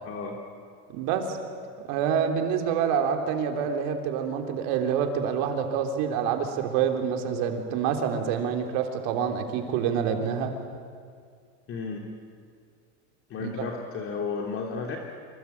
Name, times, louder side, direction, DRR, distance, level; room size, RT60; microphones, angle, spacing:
voice 1, 0.0-0.4 11.7-12.1 13.3-15.0, left 5 dB, 35° left, 1 dB, 2.9 m, -33 dB
voice 2, 0.9-1.4 1.9-10.5 13.4-13.5, right 7 dB, 65° right, 4 dB, 3.6 m, -27 dB
26.5 x 25.0 x 8.5 m, 2.1 s
cardioid pair, 150°, 38 cm